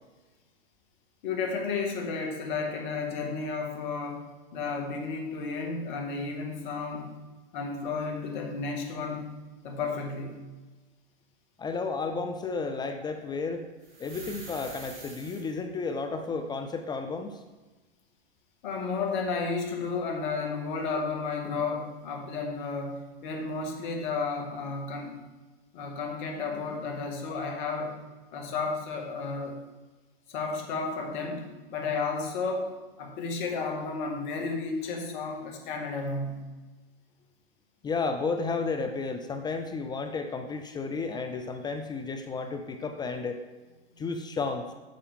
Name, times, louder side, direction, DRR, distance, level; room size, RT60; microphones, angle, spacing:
voice 1, 1.2-4.3 4.5-7.2 7.5-9.4 9.6-10.4 18.6-25.2 25.7-28.0 28.3-29.6 30.3-32.7 33.0-36.5 43.9-44.0, left 4 dB, 55° left, 2 dB, 1.9 m, -32 dB
voice 2, 11.6-13.7 14.0-17.4 37.8-43.4 44.0-44.7, left 4 dB, 15° left, 7 dB, 0.5 m, -32 dB
sound 1, 13.8-15.5 20.3-20.4, right 2 dB, 30° right, 2.8 m, -45 dB
8.6 x 7.0 x 3.6 m, 1.2 s
hypercardioid pair, 115°, 29 cm